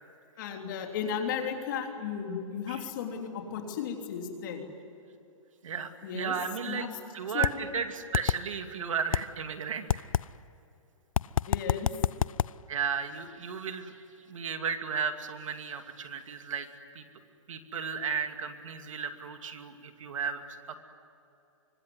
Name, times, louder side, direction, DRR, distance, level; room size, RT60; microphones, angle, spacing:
voice 1, 0.4-4.7 6.0-6.3 6.7-6.9 7.3-7.7 11.5-11.9, left 7 dB, 35° left, 2 dB, 3.4 m, -35 dB
voice 2, 5.6-6.9 7.1-10.0 12.7-13.9 14.3-16.7 16.9-17.0 17.5-20.8, right 6 dB, 70° right, 6 dB, 2.6 m, -34 dB
sound 1, 7.4-7.5 8.1-8.4 9.1-9.2 9.9-10.2 11.2-12.5, left 9 dB, 75° left, 0.5 m, -25 dB
25.0 x 24.5 x 9.6 m, 2.8 s
hypercardioid pair, 170°, 17 cm